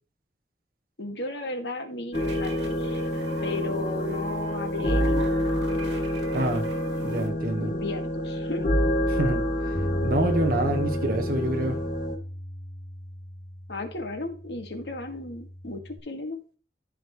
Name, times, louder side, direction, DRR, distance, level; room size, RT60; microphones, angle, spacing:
voice 1, 1.0-3.0 3.4-5.9 7.6-8.7 13.7-16.4, left 2 dB, 75° left, 2.1 m, -35 dB
sound 1, 2.1-12.2, left 1 dB, 50° left, 2.3 m, -28 dB
sound 2, 2.1-7.3, right 2 dB, 80° right, 2.7 m, -40 dB
voice 2, 6.3-6.7 7.0-7.7 9.1-9.4 10.0-11.8, right 1 dB, 55° right, 1.4 m, -26 dB
Bass guitar, 9.7-16.0, equal, 35° left, 2.0 m, -35 dB
14.5 x 5.2 x 3.2 m
head